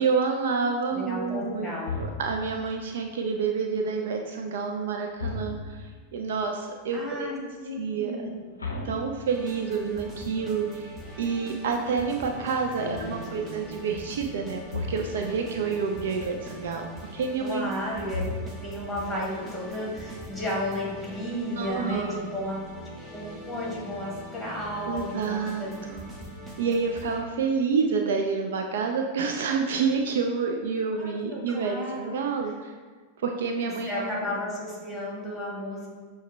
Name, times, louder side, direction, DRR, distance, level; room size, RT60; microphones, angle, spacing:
voice 1, 0.0-7.3 7.8-8.3 8.8-16.8 17.1-17.7 21.6-22.4 24.9-26.1 26.6-32.7 33.2-34.2, right 5 dB, 60° right, 3 dB, 0.3 m, -28 dB
voice 2, 0.9-2.0 6.9-8.5 12.8-13.6 17.4-18.2 18.6-25.7 31.0-32.1 32.4-32.5 33.9-35.9, left 1 dB, 5° left, -5 dB, 1.4 m, -34 dB
sound 1, 1.9-2.6 5.2-6.0 8.6-9.8 14.7-15.4 18.1-18.9, left 4 dB, 80° left, 0.5 m, -35 dB
sound 2, 9.3-27.2, right 1 dB, 15° right, 0.8 m, -42 dB
6.2 x 2.1 x 3.3 m, 1.5 s
figure-of-eight pair, 90°, 0 cm